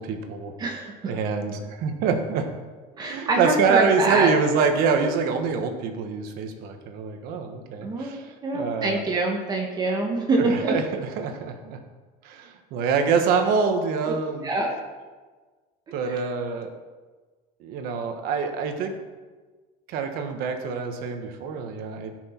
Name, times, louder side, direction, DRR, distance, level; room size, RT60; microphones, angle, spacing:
voice 1, 0.0-0.5 1.0-2.5 3.0-9.0 10.4-11.8 12.2-14.5 15.9-16.7 17.6-18.9 19.9-22.1, right 5 dB, 55° right, 6 dB, 1.4 m, -25 dB
voice 2, 0.6-1.1 2.9-4.3 7.8-10.7 14.4-14.7 16.1-16.2, right 2 dB, 20° right, 1 dB, 1.3 m, -25 dB
16.0 x 6.2 x 4.5 m, 1.3 s
cardioid pair, 170°, 18 cm